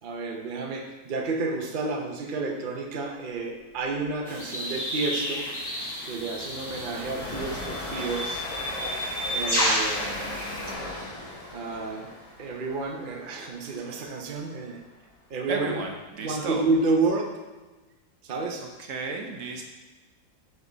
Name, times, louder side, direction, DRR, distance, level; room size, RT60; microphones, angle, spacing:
voice 1, 0.0-5.5 6.0-8.4 9.3-10.4 10.7-10.8 11.5-12.1 12.4-14.8 15.3-15.8 16.1-17.3 18.2-18.6, right 3 dB, 80° right, 1 dB, 0.4 m, -30 dB
Train, 3.8-4.0 4.3-4.5 4.8-15.0, left 1 dB, 75° left, 0.3 m, -39 dB
sound 1, 4.3-10.7, equal, 15° left, 1.0 m, -31 dB
voice 2, 15.5-16.6 18.9-19.6, right 3 dB, 60° right, 2 dB, 0.9 m, -32 dB
5.7 x 5.3 x 3.9 m, 1.2 s
omnidirectional pair, 2.0 m